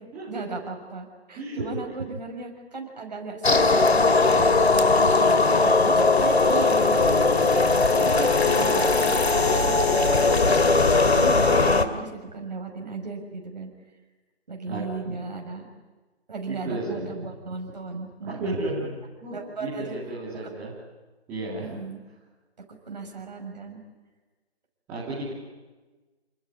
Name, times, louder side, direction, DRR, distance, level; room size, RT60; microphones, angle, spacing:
voice 1, 0.0-4.8 5.2-7.3 7.7-13.7 14.5-15.7 16.3-18.6 19.3-20.0 20.4-20.5 21.6-22.0 22.9-23.8, right 4 dB, 40° right, 2 dB, 6.4 m, -36 dB
voice 2, 1.3-2.0 14.7-14.8 15.1-15.2 16.5-17.1 18.2-18.9 19.2-20.7 21.3-21.7 24.9-25.3, right 2 dB, 5° right, -9 dB, 2.9 m, -33 dB
sound 1, 3.4-11.8, left 3 dB, 75° left, 2.7 m, -19 dB
29.5 x 20.5 x 9.8 m, 1.2 s
figure-of-eight pair, 170°, 32 cm